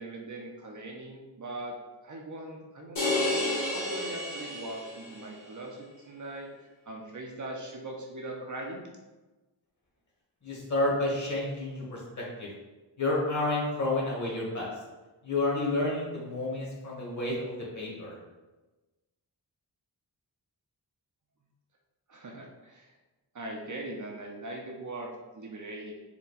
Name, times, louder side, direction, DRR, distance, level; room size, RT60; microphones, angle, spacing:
voice 1, 0.0-1.7 2.0-8.9 22.1-22.9 23.3-25.9, right 2 dB, 45° right, 0 dB, 0.6 m, -40 dB
sound 1, 3.0-5.3, left 2 dB, 90° left, 1.5 m, -31 dB
voice 2, 10.4-12.5 13.0-14.7 15.2-18.1, left 2 dB, 45° left, -4 dB, 1.3 m, -30 dB
4.3 x 2.2 x 3.9 m, 1.2 s
wide cardioid pair, 125°, 42 cm